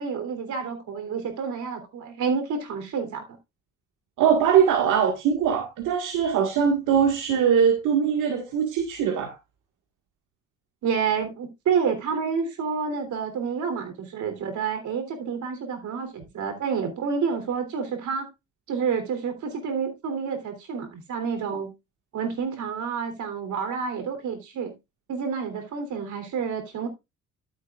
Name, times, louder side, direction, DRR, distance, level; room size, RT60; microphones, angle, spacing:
voice 1, 0.0-3.2 10.8-18.3 18.7-21.7 22.1-24.7 25.1-26.9, right 6 dB, 75° right, 3.5 m, -29 dB
voice 2, 4.2-9.4, right 7 dB, 90° right, 1.9 m, -21 dB
13.0 x 7.9 x 2.5 m
cardioid pair, 90°, 30 cm